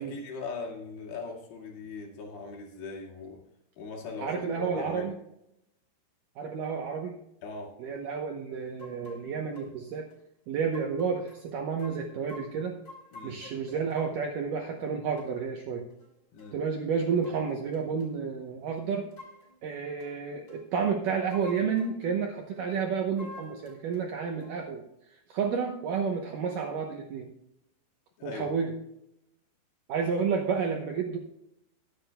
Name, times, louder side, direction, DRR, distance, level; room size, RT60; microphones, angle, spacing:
voice 1, 0.0-3.4 3.8-5.1 7.4-7.7 13.1-13.4 16.3-16.6 28.2-28.5, left 4 dB, 75° left, -1 dB, 4.5 m, -40 dB
voice 2, 4.2-5.2 6.4-7.2 7.8-10.1 10.5-12.8 13.2-15.8 16.5-19.1 19.6-27.3 28.2-28.7 29.9-31.2, right 6 dB, 75° right, 2 dB, 2.0 m, -31 dB
sound 1, 8.8-9.2 9.5-9.7 10.1-10.2 10.7-11.4 11.8-14.3 15.2-15.3 15.9-16.1 16.4-16.6 17.0-18.1 18.9-19.6 20.0-20.1 20.5-20.7 21.1-22.2 23.2-24.1 24.4-24.6, left 2 dB, 25° left, 4.4 m, -49 dB
21.0 x 8.5 x 2.3 m, 0.82 s
omnidirectional pair, 5.1 m